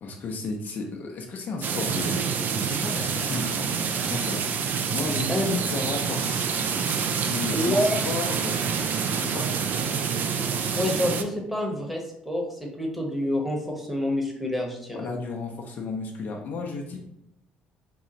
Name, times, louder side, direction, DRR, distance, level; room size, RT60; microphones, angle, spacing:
voice 1, 0.0-2.1 2.5-3.7 4.1-4.5 4.9-6.5 7.2-8.7 9.1-9.5 14.9-17.0, left 3 dB, 50° left, 1 dB, 0.5 m, -33 dB
sound 1, 1.6-11.2, right 6 dB, 50° right, 0.4 m, -27 dB
voice 2, 7.5-8.0 10.7-15.1, left 1 dB, 5° right, 0 dB, 1.0 m, -27 dB
3.7 x 2.4 x 2.9 m, 0.79 s
hypercardioid pair, 55°, 4 cm